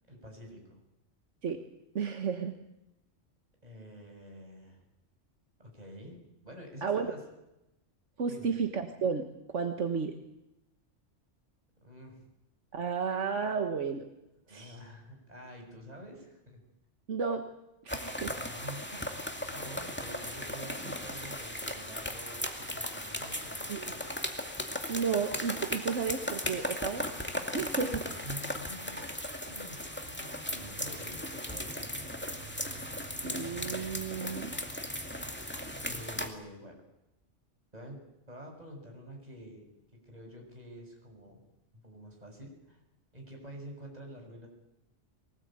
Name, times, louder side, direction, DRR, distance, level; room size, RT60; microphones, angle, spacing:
voice 1, 0.1-0.8 3.6-4.8 5.6-7.2 8.3-8.6 11.8-12.3 14.4-16.6 18.3-24.1 28.2-29.0 29.5-29.8 30.0-32.1 35.8-36.8 37.7-38.0 38.3-39.7 40.0-41.4 41.8-42.8 43.1-44.5, equal, 35° right, 2 dB, 6.7 m, -48 dB
voice 2, 1.9-2.6 6.8-7.1 8.2-9.3 9.5-10.2 12.7-14.1 14.5-14.8 17.1-17.5 17.8-18.4 23.7-23.9 24.9-27.1 27.5-28.0 33.2-34.6, right 5 dB, 75° right, 6 dB, 1.7 m, -32 dB
sound 1, 17.9-36.3, left 1 dB, 10° left, 2.2 m, -37 dB
23.0 x 19.0 x 8.9 m, 0.91 s
omnidirectional pair, 1.3 m